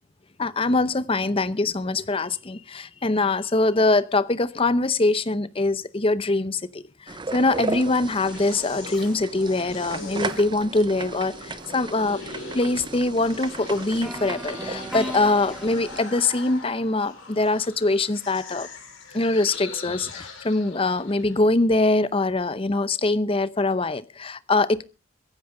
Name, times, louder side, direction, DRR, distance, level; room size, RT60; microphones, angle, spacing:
voice 1, 0.4-12.2 12.5-18.7 19.1-24.8, left 2 dB, 25° left, 0.7 m, -23 dB
sound 1, 7.1-16.0, right 3 dB, 25° right, 0.7 m, -35 dB
sound 2, 7.5-21.5, left 4 dB, 70° left, 6.6 m, -42 dB
sound 3, 14.0-18.0, equal, ahead, 1.7 m, -38 dB
23.0 x 10.5 x 3.8 m
head